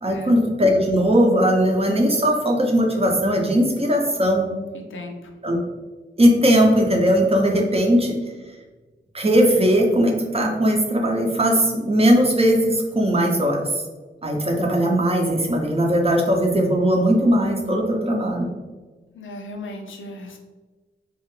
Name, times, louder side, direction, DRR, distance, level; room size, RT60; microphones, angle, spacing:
voice 1, 0.0-4.5 5.4-5.6 6.2-8.2 9.1-13.7 14.2-18.5, equal, 30° right, 1 dB, 0.6 m, -19 dB
voice 2, 4.7-5.3 19.1-20.4, left 2 dB, 85° left, 3 dB, 0.5 m, -36 dB
3.2 x 2.4 x 3.1 m, 1.3 s
wide cardioid pair, 80°, 20 cm